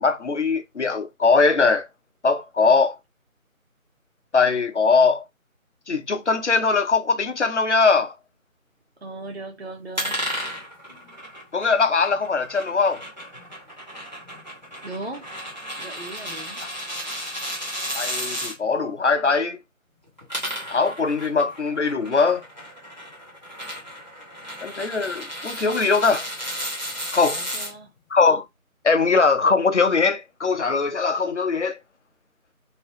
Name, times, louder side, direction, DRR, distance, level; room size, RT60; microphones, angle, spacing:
voice 1, 0.0-1.9 2.2-3.0 4.3-5.2 5.9-8.1 11.5-13.0 16.6-16.7 17.9-19.6 20.7-22.4 24.6-26.3 27.1-27.4 28.1-28.4 28.8-31.8, left 4 dB, 55° left, 0.5 m, -21 dB
voice 2, 9.0-10.2 14.8-15.3 15.8-16.6 27.3-27.9, right 2 dB, 50° right, 0.5 m, -37 dB
sound 1, 9.9-18.5 20.1-27.7, equal, 30° right, 0.9 m, -33 dB
2.7 x 2.1 x 3.2 m
figure-of-eight pair, 165°, 42 cm